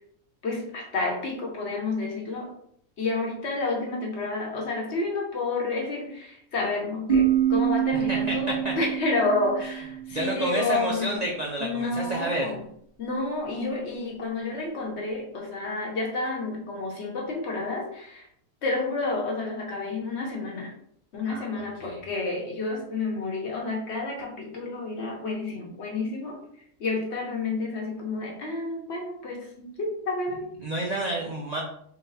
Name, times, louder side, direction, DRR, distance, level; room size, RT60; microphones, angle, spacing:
voice 1, 0.4-2.5 3.0-11.3 11.6-12.6 13.0-18.3 18.6-20.7 21.1-26.4 26.8-30.5, left 3 dB, 55° left, -1 dB, 1.1 m, -30 dB
sound 1, 7.1-10.7, right 9 dB, 30° right, 1.1 m, -26 dB
voice 2, 7.9-8.7 10.1-12.5 21.3-22.0 30.6-31.6, right 1 dB, 70° right, -1 dB, 0.4 m, -30 dB
4.0 x 2.2 x 3.9 m, 0.68 s
omnidirectional pair, 1.4 m